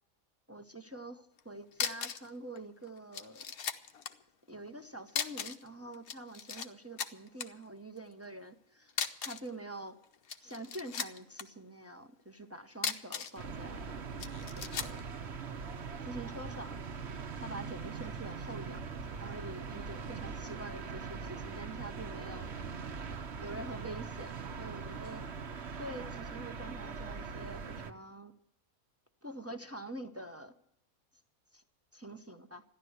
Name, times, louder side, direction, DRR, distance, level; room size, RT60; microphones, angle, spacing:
voice 1, 0.5-3.5 4.5-10.0 10.4-14.0 14.5-15.0 16.0-16.7 17.4-18.8 19.2-22.7 23.4-25.2 25.8-28.3 29.2-30.5 31.5-31.6 31.9-32.6, right 1 dB, 15° right, 6 dB, 0.7 m, -46 dB
sound 1, 1.4-1.5 1.7-2.3 2.6-2.7 3.1-4.1 5.1-5.7 5.9-6.7 7.0-7.5 8.9-9.5 10.1-11.4 12.7-13.4 14.2-15.0, left 7 dB, 80° left, 1.4 m, -37 dB
sound 2, 13.4-27.9, right 5 dB, 55° right, 1.1 m, -41 dB
14.0 x 11.0 x 7.9 m, 0.77 s
omnidirectional pair, 1.5 m